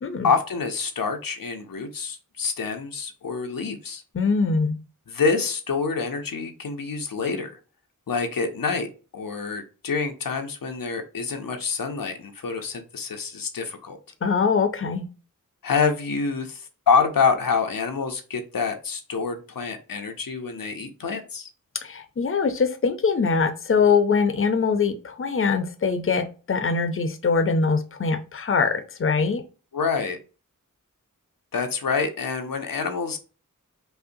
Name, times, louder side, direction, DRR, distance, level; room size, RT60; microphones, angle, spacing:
voice 1, 0.2-4.0 5.1-7.6 8.1-8.9 9.1-14.0 15.6-21.5 29.7-30.2 31.5-33.2, left 5 dB, 90° left, 5 dB, 0.6 m, -26 dB
voice 2, 4.1-4.8 14.2-15.1 21.8-29.4, left 5 dB, 40° left, 9 dB, 0.5 m, -23 dB
5.4 x 2.1 x 2.6 m, 0.35 s
wide cardioid pair, 55°, 33 cm